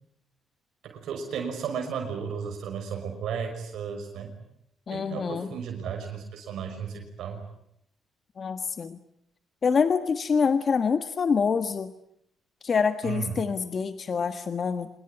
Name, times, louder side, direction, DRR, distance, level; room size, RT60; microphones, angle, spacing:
voice 1, 0.8-4.3 4.9-7.4 13.0-13.3, right 6 dB, 75° right, 3 dB, 5.8 m, -34 dB
voice 2, 4.9-5.5 8.4-9.0 9.6-11.9 12.6-14.9, left 5 dB, 45° left, 10 dB, 1.5 m, -26 dB
26.0 x 21.5 x 10.0 m, 0.75 s
cardioid pair, 90°, 0 cm